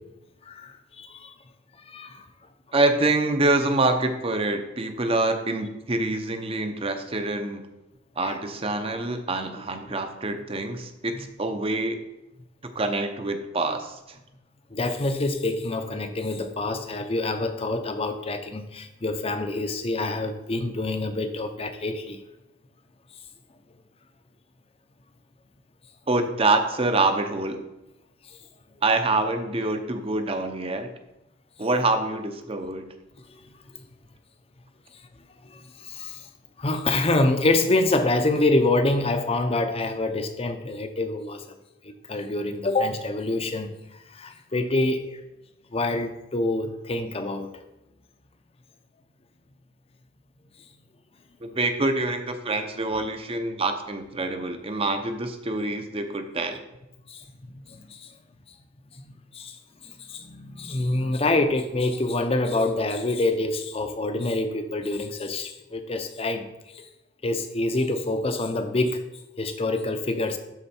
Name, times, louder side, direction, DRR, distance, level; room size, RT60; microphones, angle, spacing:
voice 1, 0.5-1.3 1.9-2.3 8.2-8.4 13.7-13.8 14.7-22.2 33.7-33.8 35.4-36.3 36.6-41.4 41.8-43.7 44.1-45.2 45.7-47.5 57.1-58.1 58.9-59.1 59.3-59.6 59.8-66.5 66.7-66.9 67.2-69.1 69.4-70.4, left 2 dB, 30° left, 8 dB, 0.6 m, -26 dB
voice 2, 2.7-7.6 8.2-12.0 12.6-14.0 26.1-27.6 28.8-30.9 31.6-32.8 51.4-56.6, right 2 dB, 30° right, 6 dB, 0.7 m, -26 dB
12.5 x 4.3 x 4.4 m, 0.95 s
head